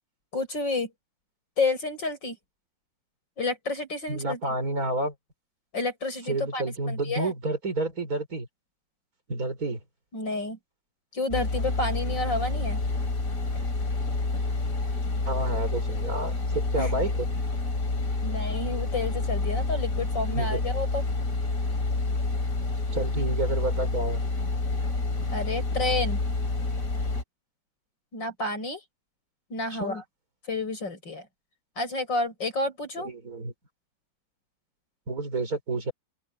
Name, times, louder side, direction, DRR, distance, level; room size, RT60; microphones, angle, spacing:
voice 1, 0.3-0.9 1.6-2.4 3.4-4.4 5.7-7.3 10.1-10.6 11.1-12.8 16.7-16.9 18.0-21.0 25.3-26.2 28.1-28.8 29.5-30.0 30.5-31.3 31.8-33.1, left 3 dB, 75° left, 8.0 m, -30 dB
voice 2, 4.1-5.1 6.3-8.5 9.3-9.8 15.3-17.3 20.3-20.6 22.9-24.2 29.7-30.0 33.0-33.5 35.1-35.9, right 2 dB, 50° right, 5.5 m, -30 dB
sound 1, 11.3-27.2, left 3 dB, 45° left, 3.7 m, -28 dB
open air
omnidirectional pair, 2.0 m